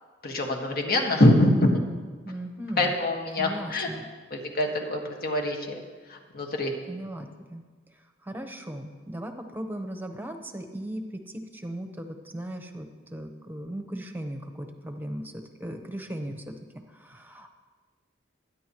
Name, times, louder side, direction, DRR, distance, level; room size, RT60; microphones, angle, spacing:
voice 1, 0.2-1.8 2.8-3.9 4.3-5.8 6.1-6.7, left 1 dB, 50° left, 2 dB, 1.7 m, -24 dB
voice 2, 2.2-2.9 3.4-4.1 6.9-7.6 8.2-15.3 15.6-16.5 16.9-17.5, right 1 dB, 10° right, 4 dB, 1.0 m, -37 dB
23.0 x 10.0 x 3.1 m, 1.4 s
head